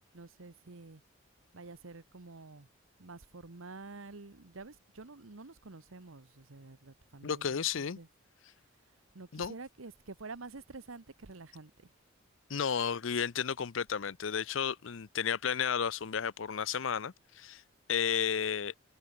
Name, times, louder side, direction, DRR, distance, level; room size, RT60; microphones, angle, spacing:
voice 1, 0.1-1.0 1.5-2.7 3.0-8.1 9.1-11.9, right 3 dB, 85° right, 1.2 m, -49 dB
voice 2, 7.2-8.0 9.3-9.5 12.5-17.6 17.9-18.7, left 7 dB, 70° left, 0.6 m, -32 dB
head